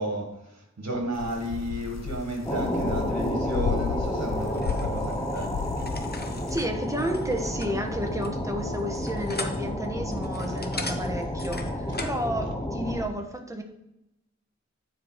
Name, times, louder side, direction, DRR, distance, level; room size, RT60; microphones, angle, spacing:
voice 1, 0.0-5.5, right 1 dB, 65° right, 2 dB, 2.0 m, -32 dB
sound 1, 1.1-6.7, left 7 dB, 65° left, 0.5 m, -34 dB
sound 2, 2.5-13.1, left 1 dB, 10° left, 1.1 m, -31 dB
sound 3, 4.4-12.3, left 2 dB, 35° left, 1.0 m, -40 dB
voice 2, 6.5-13.6, equal, 10° right, 3 dB, 1.3 m, -31 dB
9.5 x 5.0 x 4.8 m, 0.87 s
wide cardioid pair, 80°, 29 cm